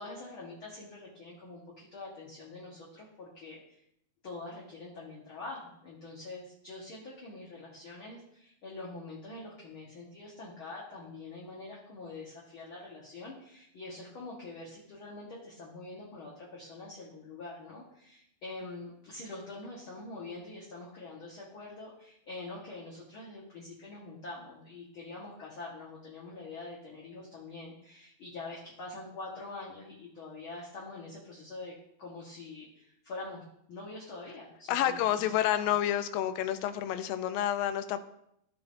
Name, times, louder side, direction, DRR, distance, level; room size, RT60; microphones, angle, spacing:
voice 1, 0.0-3.8 4.2-33.4 33.7-35.7, left 2 dB, 55° left, -4 dB, 1.5 m, -45 dB
voice 2, 34.7-38.0, left 11 dB, 80° left, 10 dB, 2.3 m, -29 dB
14.5 x 5.6 x 2.6 m, 0.75 s
omnidirectional pair, 4.1 m